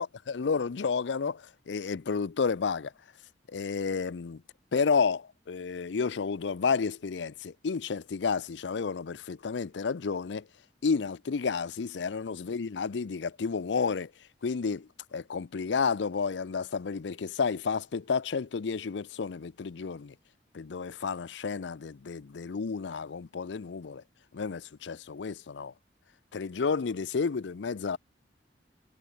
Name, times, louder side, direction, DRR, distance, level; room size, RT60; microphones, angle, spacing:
voice 1, 0.0-2.9 3.5-4.4 4.7-10.5 10.8-14.1 14.4-20.1 20.5-24.0 24.3-25.7 26.3-28.0, left 5 dB, 75° left, 0.5 m, -31 dB
head